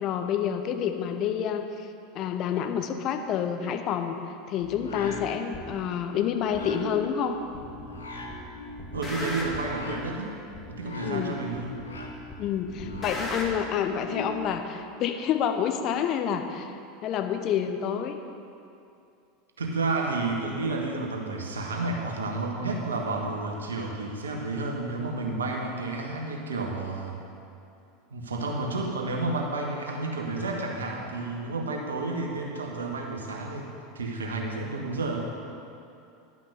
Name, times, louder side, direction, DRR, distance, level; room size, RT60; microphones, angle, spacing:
voice 1, 0.0-1.9 2.1-4.2 4.5-7.4 11.0-11.3 12.4-16.7 17.0-18.2, left 8 dB, 45° left, 7 dB, 0.8 m, -28 dB
sound 1, 4.6-14.6, left 1 dB, 80° left, 1.0 m, -40 dB
sound 2, 5.5-5.7 6.5-6.6 7.5-8.0 8.3-9.8 10.5-10.6 11.5-12.0 12.3-13.5, left 1 dB, 20° left, 2.1 m, -37 dB
voice 2, 8.9-10.3 10.7-11.8 19.6-27.2 28.1-33.7 33.9-35.3, right 3 dB, 80° right, 0 dB, 1.4 m, -31 dB
11.0 x 6.0 x 6.3 m, 2.6 s
figure-of-eight pair, 80°, 0 cm